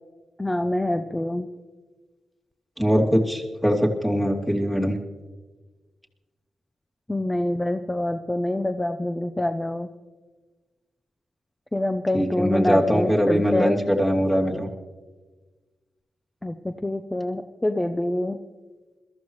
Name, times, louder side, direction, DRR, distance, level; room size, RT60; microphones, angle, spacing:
voice 1, 0.4-1.5 7.1-9.9 11.7-13.7 16.4-18.4, left 1 dB, 20° left, 8 dB, 0.7 m, -26 dB
voice 2, 2.8-5.0 12.1-14.7, equal, ahead, -1 dB, 2.6 m, -22 dB
21.5 x 14.0 x 3.2 m, 1.3 s
supercardioid pair, 50°, 0 cm